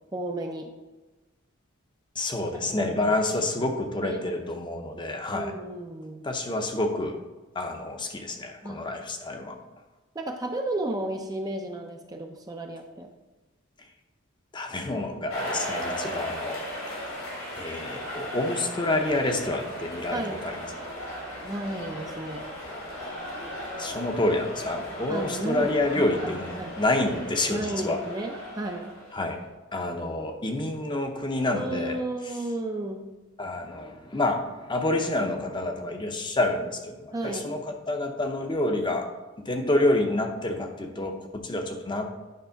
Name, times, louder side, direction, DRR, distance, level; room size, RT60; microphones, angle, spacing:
voice 1, 0.1-0.7 2.8-3.2 3.5-4.3 5.3-6.3 8.6-8.8 10.1-13.1 20.1-20.5 21.4-22.5 25.1-26.7 27.5-29.0 31.5-33.1 37.1-37.6, right 1 dB, 20° right, 3 dB, 0.5 m, -33 dB
voice 2, 2.2-5.5 6.2-7.2 7.5-9.6 14.5-16.6 17.6-20.7 23.8-28.0 29.1-29.4 29.7-32.0 33.4-39.1 39.4-42.1, left 2 dB, 20° left, 4 dB, 0.7 m, -28 dB
sound 1, 15.3-29.5, equal, 85° left, 2.3 m, -36 dB
9.5 x 3.3 x 5.7 m, 1.2 s
head